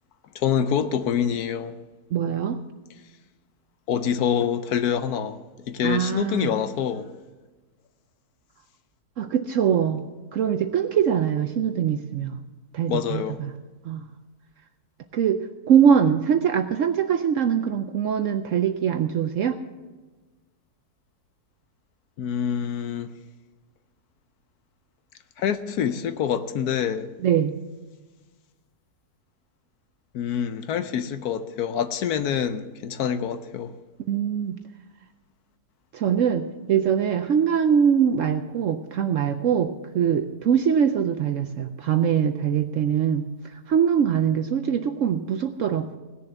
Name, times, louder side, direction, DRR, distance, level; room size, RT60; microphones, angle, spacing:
voice 1, 0.3-1.7 3.9-5.4 5.7-7.1 12.9-13.4 22.2-23.1 25.4-27.1 30.1-33.7, left 8 dB, 70° left, 1.1 m, -26 dB
voice 2, 2.1-2.6 5.8-6.5 9.2-10.0 10.3-12.4 12.7-13.5 13.8-14.0 15.1-15.4 15.7-19.6 27.2-27.5 34.1-34.6 35.9-46.0, right 8 dB, 65° right, 0.8 m, -23 dB
17.0 x 7.0 x 7.9 m
omnidirectional pair, 1.8 m